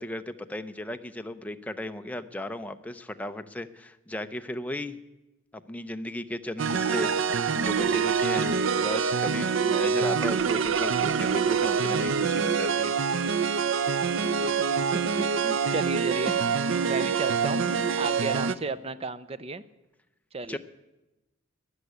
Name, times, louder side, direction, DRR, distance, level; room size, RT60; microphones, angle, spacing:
voice 1, 0.0-5.0 5.5-8.6 8.8-12.9 15.6-15.8 16.7-17.1 17.6-17.9 20.5-20.6, left 1 dB, 5° left, 8 dB, 0.6 m, -36 dB
sound 1, 6.6-18.5, right 6 dB, 70° right, 0.6 m, -25 dB
voice 2, 14.1-17.6 18.0-19.6 20.3-20.6, right 3 dB, 30° right, 15 dB, 0.6 m, -34 dB
13.0 x 10.5 x 9.7 m, 1.0 s
head